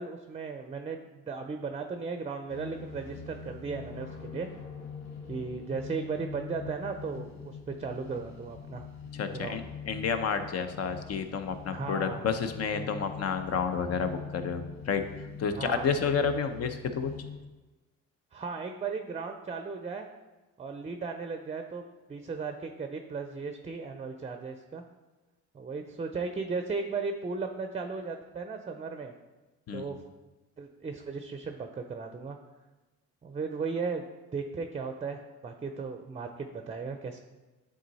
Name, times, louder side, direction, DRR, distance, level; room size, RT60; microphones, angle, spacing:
voice 1, 0.0-4.5 5.3-8.8 9.3-9.6 11.7-12.3 15.6-15.9 18.3-20.1 20.6-21.8 22.1-24.8 25.5-29.1 29.7-30.0 30.6-32.4 33.2-34.1 34.3-37.2, right 4 dB, 20° right, 6 dB, 0.5 m, -36 dB
sound 1, 2.5-17.4, left 6 dB, 75° left, 1.2 m, -43 dB
voice 2, 9.1-15.0 15.4-17.1 29.7-30.0, left 6 dB, 55° left, 8 dB, 0.7 m, -30 dB
9.3 x 3.8 x 4.1 m, 1.2 s
cardioid pair, 90°, 30 cm